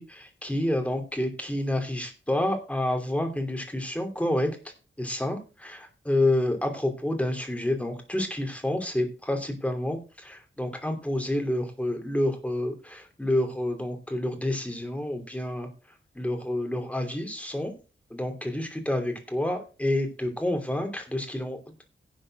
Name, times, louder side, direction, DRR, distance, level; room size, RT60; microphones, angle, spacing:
voice 1, 0.0-4.5 5.0-15.7 16.1-17.7 18.1-21.9, left 1 dB, 5° left, 4 dB, 2.9 m, -29 dB
11.5 x 5.1 x 7.7 m, 0.33 s
wide cardioid pair, 150°, 19 cm